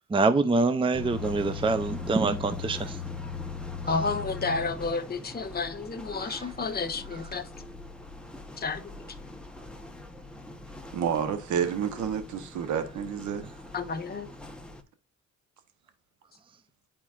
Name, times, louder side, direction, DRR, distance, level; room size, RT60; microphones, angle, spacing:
voice 1, 0.1-2.9 6.3-6.4, right 3 dB, 15° right, 0.6 m, -25 dB
sound 1, 0.9-14.8, left 4 dB, 5° left, 1.1 m, -41 dB
voice 2, 3.9-7.4 8.6-8.9 13.7-14.3, left 4 dB, 30° left, 1.1 m, -31 dB
voice 3, 10.9-13.5, right 8 dB, 75° right, 1.1 m, -29 dB
9.8 x 4.4 x 2.5 m
cardioid pair, 90°, 30 cm